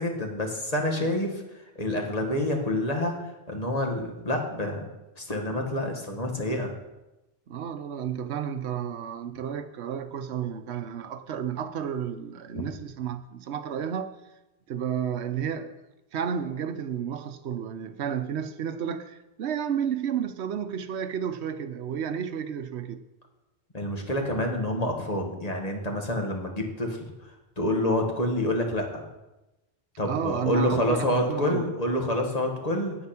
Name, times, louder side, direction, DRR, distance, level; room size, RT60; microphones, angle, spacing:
voice 1, 0.0-1.4 1.7-3.2 3.5-4.9 5.2-6.8 12.5-12.6 23.7-27.0 27.6-29.0 30.0-32.9, left 1 dB, 35° left, 1.7 m, -27 dB
voice 2, 7.5-14.2 14.7-15.7 16.1-23.0 30.0-31.7, right 8 dB, 85° right, 1.0 m, -32 dB
9.5 x 8.5 x 5.8 m
omnidirectional pair, 1.1 m